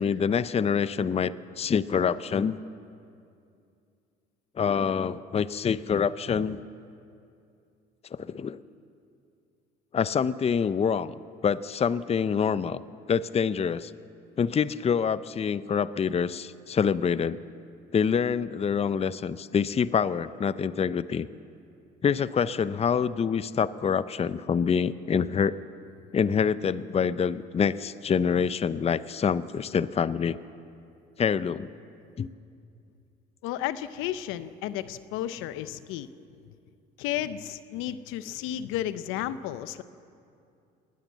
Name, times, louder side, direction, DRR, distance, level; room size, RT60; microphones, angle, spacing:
voice 1, 0.0-2.6 4.6-6.6 8.1-8.6 9.9-11.1 11.4-12.8 13.1-13.9 14.4-17.4 17.9-21.3 22.0-25.6 26.1-30.4 31.2-31.7 32.2-32.3, left 6 dB, 30° left, 16 dB, 0.6 m, -26 dB
voice 2, 33.4-36.1 37.0-39.8, left 12 dB, 75° left, 14 dB, 0.8 m, -33 dB
20.0 x 19.0 x 7.5 m, 2.5 s
supercardioid pair, 75°, 21 cm